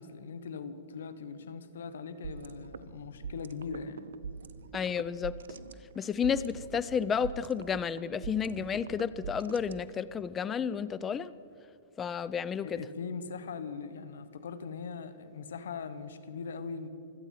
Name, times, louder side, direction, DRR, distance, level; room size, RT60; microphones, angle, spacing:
voice 1, 0.0-4.1 12.6-16.9, left 5 dB, 80° left, 12 dB, 1.1 m, -40 dB
sound 1, 2.2-10.2, right 6 dB, 85° right, 0.7 m, -44 dB
voice 2, 4.7-5.3 6.0-11.3 12.0-12.8, left 7 dB, 20° left, 16 dB, 0.5 m, -31 dB
25.0 x 8.8 x 5.8 m, 2.6 s
hypercardioid pair, 130°, 0 cm